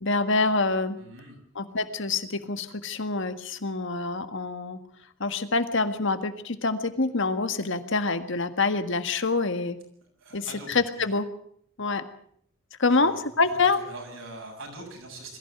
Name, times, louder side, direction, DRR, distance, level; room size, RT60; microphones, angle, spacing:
voice 1, 0.0-1.0 1.6-4.8 5.2-9.8 10.3-11.3 11.8-12.1 12.8-13.8, left 3 dB, 60° left, 9 dB, 1.8 m, -26 dB
voice 2, 1.0-1.4 10.2-11.1 12.9-15.4, right 2 dB, 70° right, 2 dB, 7.9 m, -43 dB
22.0 x 15.0 x 8.0 m, 0.63 s
head